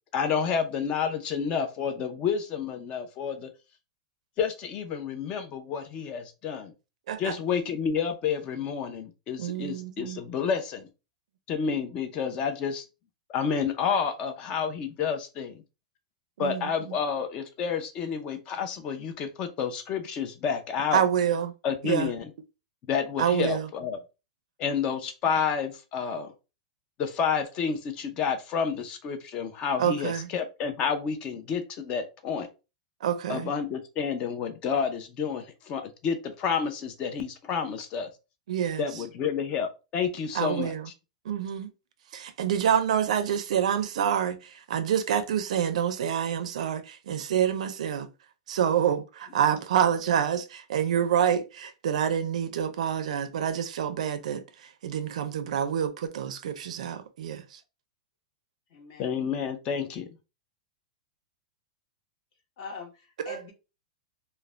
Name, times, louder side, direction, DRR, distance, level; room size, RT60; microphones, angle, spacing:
voice 1, 0.1-3.5 4.4-6.7 7.2-10.9 11.5-12.8 13.3-15.6 16.4-21.0 21.6-22.3 22.9-24.0 24.6-26.3 27.0-32.5 33.3-38.1 38.8-40.7 59.0-60.1, left 6 dB, 25° left, 0.5 m, -30 dB
voice 2, 9.4-10.2 16.4-16.9 20.9-21.5 21.8-22.1 23.2-23.7 29.8-30.3 33.0-33.5 38.5-38.8 40.3-40.8 41.3-41.7 42.1-48.1 48.5-50.4 50.7-57.6 63.2-63.4, right 9 dB, 75° right, 0.4 m, -27 dB
voice 3, 58.7-59.1 62.6-63.5, left 5 dB, 45° left, 1.0 m, -43 dB
2.4 x 2.1 x 3.2 m
supercardioid pair, 160°, 4 cm